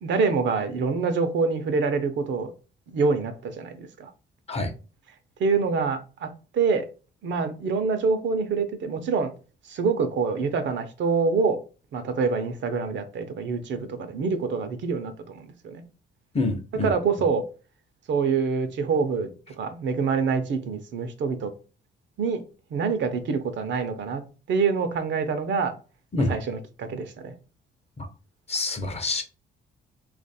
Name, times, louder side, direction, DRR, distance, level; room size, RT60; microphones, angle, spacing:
voice 1, 0.0-2.5 2.9-4.1 5.4-6.9 7.2-9.3 9.7-11.6 11.9-15.8 16.8-17.4 18.1-19.3 19.6-21.5 22.2-22.4 22.7-24.2 24.5-25.7 26.3-27.3, right 5 dB, 65° right, 0.7 m, -26 dB
voice 2, 16.3-16.9 26.1-26.3 28.0-28.1 28.5-29.2, left 2 dB, 30° left, 0.8 m, -26 dB
3.0 x 2.5 x 4.2 m
cardioid pair, 90°, 20 cm